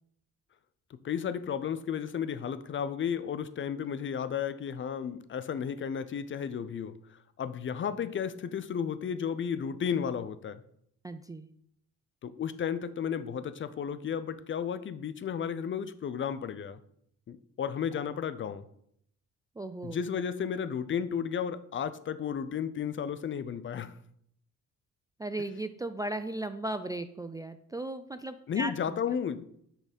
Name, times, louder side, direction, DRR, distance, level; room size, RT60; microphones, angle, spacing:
voice 1, 0.9-10.6 12.2-16.8 17.3-18.7 19.8-23.9 28.5-29.4, left 7 dB, 40° left, 13 dB, 0.5 m, -33 dB
voice 2, 11.0-11.5 19.6-20.0 25.2-28.7, right 1 dB, 15° right, 9 dB, 0.3 m, -36 dB
6.1 x 4.1 x 5.2 m, 0.69 s
cardioid pair, 90°, 30 cm